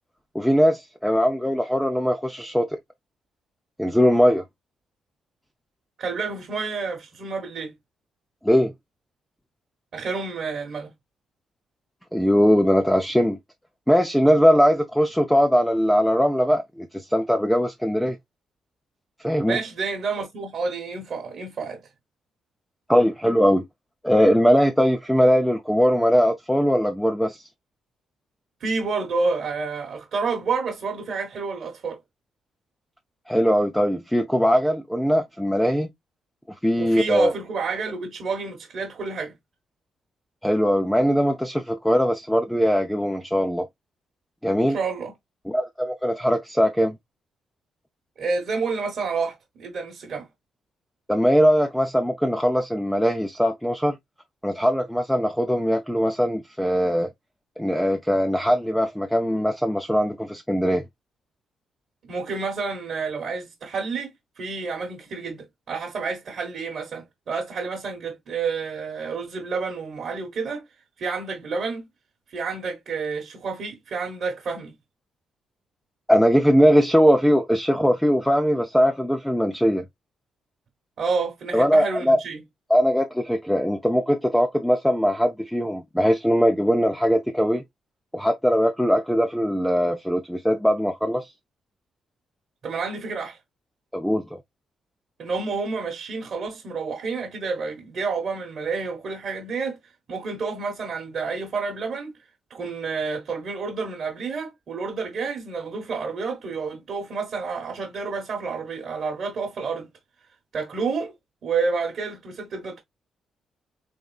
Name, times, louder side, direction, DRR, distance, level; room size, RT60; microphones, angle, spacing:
voice 1, 0.3-2.8 3.8-4.4 8.4-8.7 12.1-13.4 13.9-18.2 19.2-19.6 22.9-23.7 24.0-27.5 33.3-35.9 36.6-37.3 40.4-43.7 44.4-44.8 45.5-47.0 51.1-54.0 54.4-57.1 57.6-60.8 76.1-79.9 81.5-82.2 82.7-87.6 88.1-91.3 93.9-94.3, equal, ahead, 0.4 m, -20 dB
voice 2, 6.0-7.7 9.9-10.9 19.5-21.8 28.6-32.0 36.8-39.4 44.7-45.1 48.2-50.3 62.1-70.6 71.0-71.9 72.3-74.8 81.0-82.4 92.6-93.4 95.2-99.8 100.1-102.1 102.5-109.9 110.5-111.1 111.4-112.8, right 4 dB, 45° right, 1.1 m, -29 dB
3.9 x 3.7 x 2.3 m
cardioid pair, 170°, 0 cm